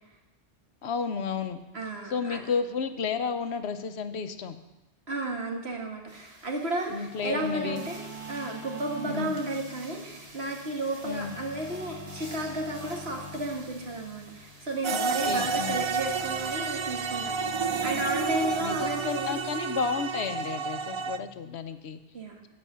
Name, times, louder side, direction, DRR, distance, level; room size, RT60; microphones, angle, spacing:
voice 1, 0.8-1.6 2.1-4.6 6.9-7.8 9.0-9.4 11.0-11.4 14.9-15.8 18.6-22.0, left 5 dB, 80° left, 9 dB, 1.1 m, -32 dB
voice 2, 1.7-2.4 5.1-8.0 8.3-17.3 17.8-19.4 22.1-22.3, right 2 dB, 75° right, 1 dB, 2.2 m, -33 dB
sound 1, 6.1-19.6, right 2 dB, 35° right, 1.5 m, -51 dB
sound 2, 7.1-21.6, equal, 25° left, 4.6 m, -45 dB
sound 3, 14.8-21.2, right 5 dB, 50° right, 0.3 m, -30 dB
14.0 x 5.4 x 8.6 m, 0.99 s
omnidirectional pair, 1.1 m